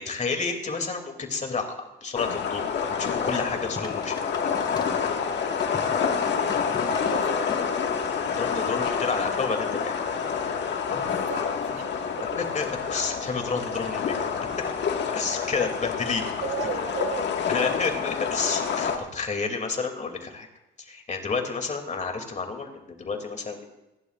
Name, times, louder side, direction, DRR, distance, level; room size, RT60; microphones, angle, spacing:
voice 1, 0.0-2.6 3.0-4.2 8.4-9.9 12.5-14.8 15.1-16.3 17.5-20.5 20.9-23.6, left 4 dB, 35° left, 4 dB, 2.9 m, -30 dB
sound 1, 2.2-19.0, left 6 dB, 65° left, 1.9 m, -28 dB
sound 2, 3.4-7.7 8.9-9.3, left 3 dB, 20° left, 1.2 m, -42 dB
voice 2, 6.2-7.8 10.8-11.9 12.2-12.4 16.4-17.4, right 7 dB, 85° right, 7 dB, 1.8 m, -37 dB
28.5 x 11.5 x 2.5 m, 0.94 s
cardioid pair, 90°, 20 cm